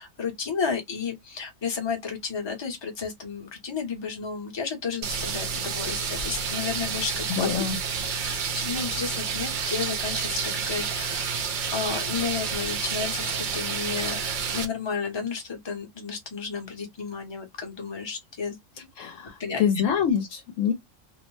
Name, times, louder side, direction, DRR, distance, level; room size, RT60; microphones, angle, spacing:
voice 1, 0.0-7.6 8.1-10.4 10.7-14.2 14.5-18.9 19.4-19.7, left 5 dB, 25° left, 0.7 m, -32 dB
sound 1, 5.0-14.6, right 6 dB, 65° right, 0.5 m, -29 dB
voice 2, 7.3-7.8 19.0-20.7, left 7 dB, 75° left, 0.9 m, -25 dB
2.5 x 2.0 x 3.1 m
omnidirectional pair, 1.4 m